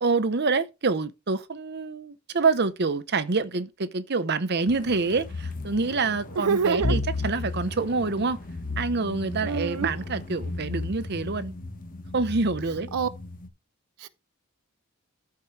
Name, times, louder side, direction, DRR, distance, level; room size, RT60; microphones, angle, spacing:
voice 1, 0.0-8.4 8.8-11.5 12.1-12.9, right 4 dB, 50° right, 0.8 m, -26 dB
sound 1, 4.7-13.5, left 2 dB, 40° left, 1.2 m, -34 dB
voice 2, 6.4-7.0 9.4-9.9 12.9-13.1 14.0-14.1, right 6 dB, 85° right, 0.5 m, -26 dB
13.5 x 4.7 x 3.2 m
head